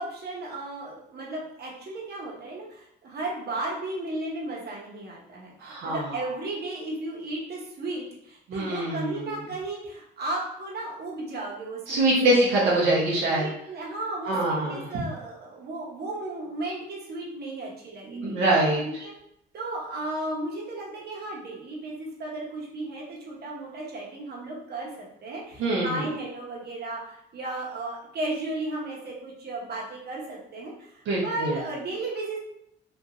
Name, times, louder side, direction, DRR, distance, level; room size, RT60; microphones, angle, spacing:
voice 1, 0.0-12.4 13.3-18.4 19.0-19.1 19.5-32.4, right 2 dB, 55° right, -3 dB, 0.9 m, -35 dB
voice 2, 5.6-6.0 8.5-9.2 11.9-13.4 14.2-14.9 18.1-18.8 25.6-26.1 31.1-31.6, right 1 dB, 80° right, -5 dB, 0.7 m, -24 dB
2.9 x 2.5 x 2.5 m, 0.75 s
cardioid pair, 90°, 20 cm